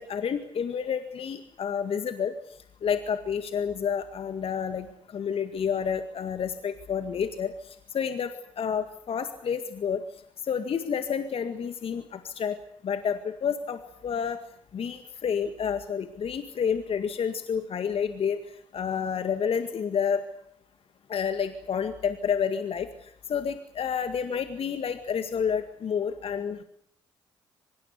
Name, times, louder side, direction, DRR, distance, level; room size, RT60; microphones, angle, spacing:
voice 1, 0.0-2.3 2.8-8.3 8.6-10.0 10.5-12.6 12.8-14.4 14.7-18.4 18.7-20.3 21.1-22.9 23.3-26.6, left 7 dB, 55° left, 8 dB, 2.0 m, -29 dB
24.5 x 22.0 x 8.2 m, 0.68 s
hypercardioid pair, 40°, 12 cm